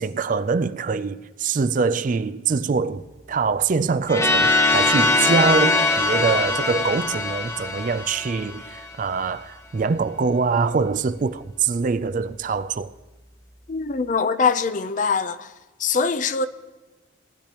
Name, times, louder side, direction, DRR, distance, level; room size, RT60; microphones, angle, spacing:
voice 1, 0.0-12.9, right 5 dB, 40° right, 0.4 m, -24 dB
sound 1, 4.1-8.9, left 3 dB, 15° left, 0.7 m, -21 dB
voice 2, 13.7-15.5 15.8-16.5, left 5 dB, 40° left, 0.5 m, -23 dB
18.5 x 11.5 x 2.9 m
head